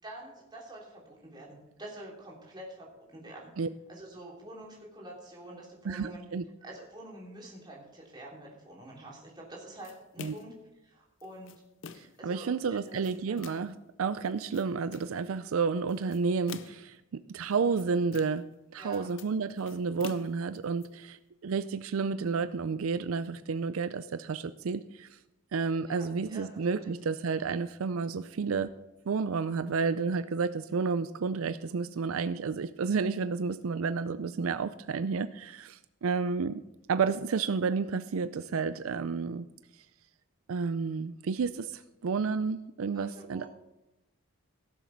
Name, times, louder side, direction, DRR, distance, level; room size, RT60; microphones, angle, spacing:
voice 1, 0.0-3.5 3.9-6.2 6.6-10.5 10.8-11.5 12.2-13.0 13.3-13.4 18.7-19.1 25.8-26.9 42.9-43.5, right 1 dB, 20° right, -4 dB, 3.3 m, -47 dB
voice 2, 5.9-6.4 10.2-10.3 11.9-18.4 18.7-25.2 25.5-28.7 29.1-36.6 36.9-39.5 40.5-43.4, right 5 dB, 75° right, 13 dB, 0.4 m, -31 dB
sound 1, 9.8-10.6 11.2-12.2 12.8-13.8 14.3-15.2 15.9-16.9 17.5-18.5 18.8-20.9, left 5 dB, 60° left, 0.6 m, -47 dB
16.5 x 7.3 x 5.8 m, 0.94 s
head